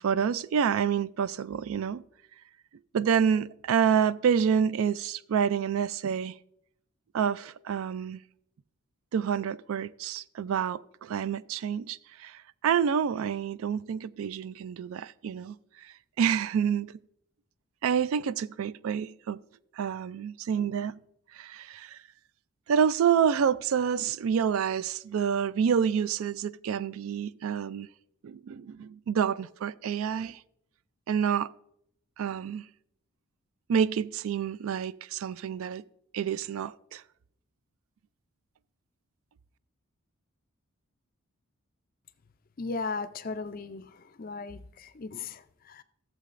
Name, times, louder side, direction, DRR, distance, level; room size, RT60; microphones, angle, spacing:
voice 1, 0.0-2.0 2.9-6.3 7.1-8.2 9.1-15.5 15.8-16.9 17.8-19.4 19.8-21.0 21.3-22.0 22.7-27.9 28.2-30.4 31.1-31.5 32.2-32.6 33.7-35.8 36.1-37.0, right 7 dB, 70° right, 0.3 m, -28 dB
voice 2, 42.6-45.8, left 4 dB, 40° left, 0.4 m, -37 dB
15.0 x 7.5 x 2.5 m
head